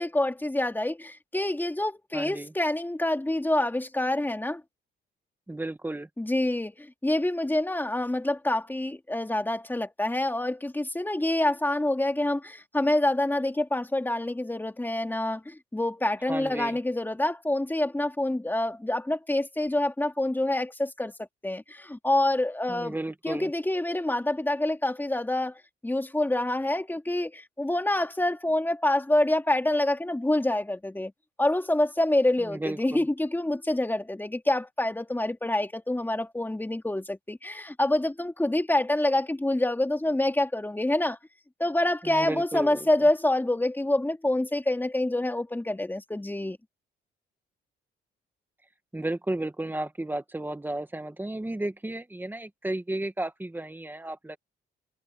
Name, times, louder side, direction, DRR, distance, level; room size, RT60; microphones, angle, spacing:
voice 1, 0.0-4.6 6.2-21.1 21.4-23.0 23.2-31.1 31.4-41.2 41.6-46.6, left 1 dB, 10° left, 2.5 m, -27 dB
voice 2, 2.1-2.5 5.5-6.1 16.3-16.8 22.7-23.5 32.4-33.0 42.0-42.8 48.9-54.4, right 1 dB, 10° right, 1.9 m, -33 dB
cardioid pair, 90°, 20 cm